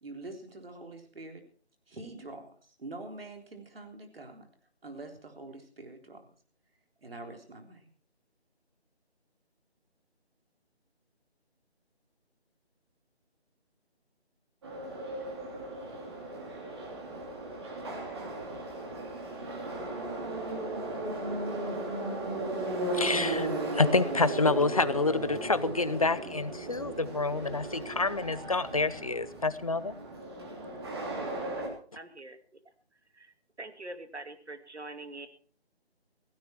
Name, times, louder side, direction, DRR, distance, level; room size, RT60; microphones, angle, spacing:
voice 1, 0.0-1.4 1.9-2.5 2.8-4.5 4.8-6.3 7.0-7.9, right 2 dB, 60° right, 4 dB, 3.8 m, -45 dB
Subway metro underground, 14.6-31.7, right 2 dB, 25° right, 3.3 m, -36 dB
voice 2, 22.9-23.5 23.7-29.9, left 3 dB, 35° left, 16 dB, 0.7 m, -28 dB
voice 3, 32.0-32.6 33.1-35.3, right 2 dB, 85° right, 9 dB, 2.4 m, -44 dB
16.5 x 15.0 x 4.5 m, 0.42 s
figure-of-eight pair, 165°, 33 cm